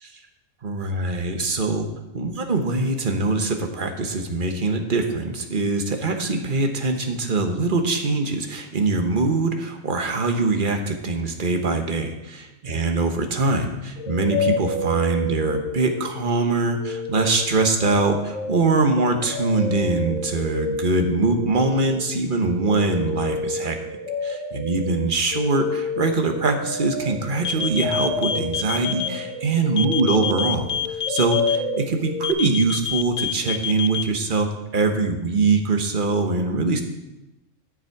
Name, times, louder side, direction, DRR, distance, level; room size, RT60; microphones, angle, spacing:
voice 1, 0.6-1.9 2.1-23.8 24.2-30.7 31.1-36.8, right 3 dB, 40° right, 4 dB, 1.2 m, -23 dB
sound 1, 14.0-16.3 16.6-32.3, left 2 dB, 70° left, 3.4 m, -30 dB
sound 2, 27.4-29.1 29.8-31.6 32.2-34.0, left 8 dB, 55° left, 0.6 m, -26 dB
12.5 x 7.3 x 4.7 m, 0.97 s
omnidirectional pair, 1.4 m